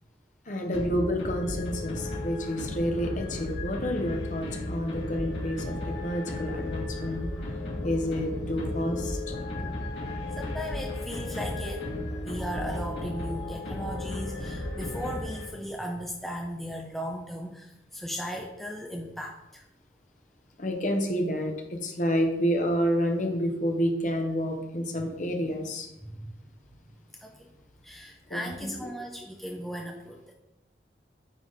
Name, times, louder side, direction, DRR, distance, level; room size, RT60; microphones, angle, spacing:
voice 1, 0.5-7.3 7.8-9.7 20.6-25.9 28.3-28.7, equal, 45° left, 3 dB, 0.9 m, -29 dB
sound 1, 0.7-15.8, left 1 dB, 80° left, 2.2 m, -34 dB
voice 2, 10.2-11.9 12.2-19.6 26.0-26.3 26.8-26.9 27.2-27.5 27.8-30.3, equal, ahead, 0 dB, 0.5 m, -37 dB
9.1 x 3.5 x 4.0 m, 0.94 s
head